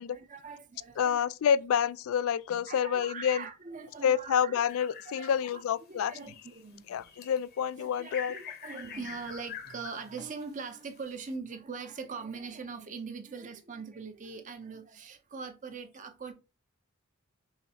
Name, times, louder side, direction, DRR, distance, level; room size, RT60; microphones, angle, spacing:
voice 1, 0.1-1.2 2.7-4.6 5.0-5.6 5.9-7.1 7.8-16.3, right 5 dB, 35° right, 0.5 m, -42 dB
voice 2, 1.0-3.4 4.0-6.1 6.9-8.3, left 8 dB, 70° left, 0.3 m, -28 dB
sound 1, 4.7-5.8 6.2-11.3, left 7 dB, 45° left, 0.8 m, -46 dB
5.6 x 2.0 x 4.2 m
head